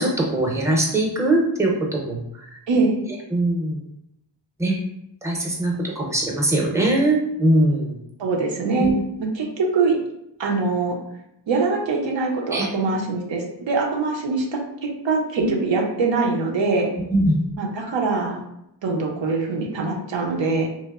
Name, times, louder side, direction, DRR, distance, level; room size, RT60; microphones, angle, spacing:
voice 1, 0.0-2.2 3.3-3.8 4.6-4.8 5.2-8.0 8.8-8.9 12.5-12.7 15.4-15.5 17.1-17.4, right 1 dB, 5° right, -1 dB, 0.6 m, -21 dB
voice 2, 2.7-3.0 8.2-8.9 9.2-10.0 10.4-11.0 11.5-16.9 17.6-18.4 18.8-20.7, right 3 dB, 85° right, -1 dB, 0.6 m, -23 dB
2.9 x 2.0 x 2.3 m, 0.82 s
wide cardioid pair, 45°, 43 cm